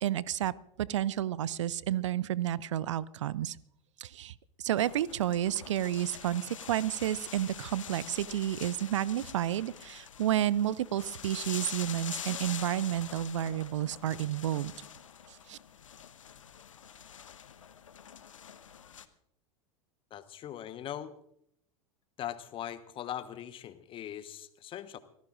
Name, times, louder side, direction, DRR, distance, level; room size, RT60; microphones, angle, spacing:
voice 1, 0.0-0.5 0.8-3.6 4.0-4.3 4.6-14.7 15.5-15.6, right 12 dB, 60° right, 22 dB, 0.5 m, -31 dB
sound 1, 4.8-19.0, left 8 dB, 70° left, 0.9 m, -45 dB
voice 2, 20.1-21.1 22.2-25.0, left 11 dB, 30° left, 13 dB, 1.1 m, -40 dB
25.5 x 17.5 x 2.5 m, 0.74 s
figure-of-eight pair, 85°, 17 cm